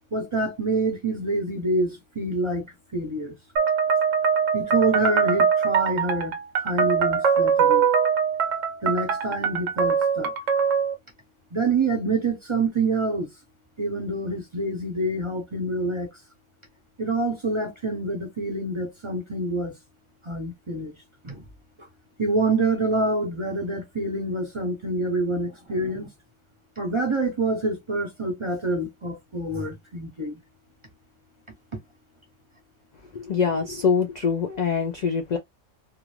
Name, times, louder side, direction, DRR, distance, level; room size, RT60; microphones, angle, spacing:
voice 1, 0.1-3.3 4.5-7.9 8.8-10.3 11.5-13.3 13.8-16.1 17.0-19.7 20.2-20.9 21.2-21.4 22.2-26.1 26.8-30.4, right 2 dB, 35° right, 0.5 m, -26 dB
sound 1, 3.6-10.9, right 6 dB, 80° right, 1.0 m, -22 dB
voice 2, 33.1-35.4, left 6 dB, 80° left, 0.3 m, -24 dB
2.4 x 2.4 x 3.0 m
omnidirectional pair, 1.3 m